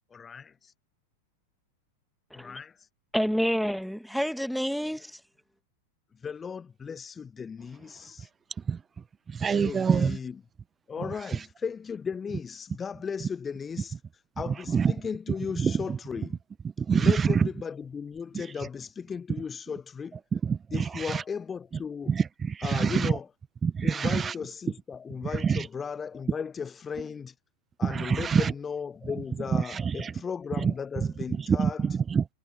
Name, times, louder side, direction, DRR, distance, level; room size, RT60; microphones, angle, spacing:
voice 1, 0.1-0.7 2.3-2.9 6.2-8.3 9.5-10.3 10.9-14.0 14.4-16.4 16.9-20.2 20.7-22.1 22.6-23.2 23.8-27.3 27.8-31.8, left 6 dB, 20° left, 0.6 m, -36 dB
voice 2, 3.1-5.2, equal, ahead, 2.0 m, -28 dB
voice 3, 9.3-10.2 11.0-11.5 14.5-15.0 15.6-16.0 16.6-17.5 18.3-18.7 20.3-21.2 22.1-23.2 23.6-24.3 25.2-25.7 27.8-28.5 29.0-30.1 30.5-32.3, right 6 dB, 20° right, 1.0 m, -27 dB
figure-of-eight pair, 90°, 0 cm